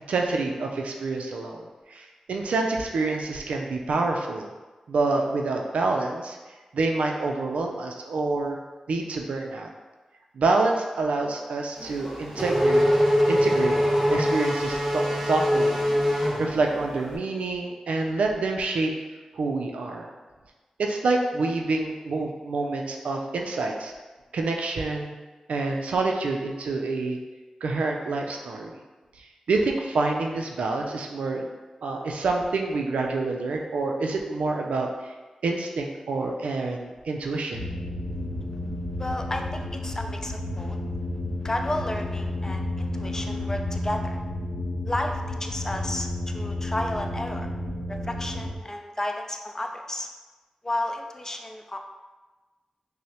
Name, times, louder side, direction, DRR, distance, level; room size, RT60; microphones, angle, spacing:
voice 1, 0.1-4.5 4.9-6.4 6.7-8.6 8.9-9.7 10.3-12.8 13.3-13.8 14.1-15.8 16.4-18.9 19.3-20.1 20.8-23.9 24.3-25.1 25.5-27.2 27.6-28.7 29.2-31.5 31.8-35.1 35.4-37.7, right 3 dB, 90° right, 1 dB, 0.4 m, -27 dB
Race car auto racing / Accelerating revving vroom, 11.8-17.0, equal, 20° right, 1.1 m, -23 dB
sound 1, 37.5-48.6, left 1 dB, 75° left, 0.6 m, -31 dB
voice 2, 39.0-40.8 41.4-44.2 44.9-47.5 47.9-50.1 50.6-51.8, left 1 dB, 25° left, 4 dB, 0.4 m, -32 dB
5.4 x 2.0 x 2.8 m, 1.2 s
cardioid pair, 45°, 2 cm